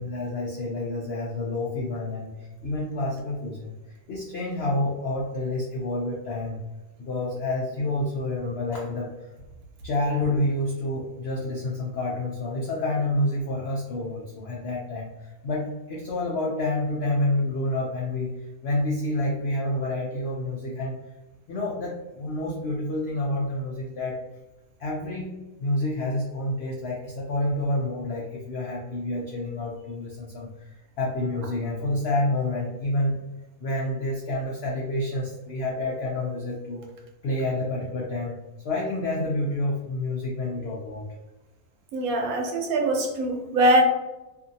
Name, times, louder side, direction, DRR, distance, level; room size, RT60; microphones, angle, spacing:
voice 1, 0.0-3.7 4.1-6.6 7.0-9.3 9.8-18.3 18.6-20.9 21.5-24.2 24.8-25.3 25.6-33.1 33.6-36.9 37.2-38.4 38.6-41.1, left 1 dB, 75° left, -3 dB, 0.6 m, -28 dB
voice 2, 41.9-43.8, right 1 dB, 75° right, 1 dB, 1.0 m, -22 dB
2.6 x 2.6 x 2.6 m, 1.1 s
omnidirectional pair, 1.6 m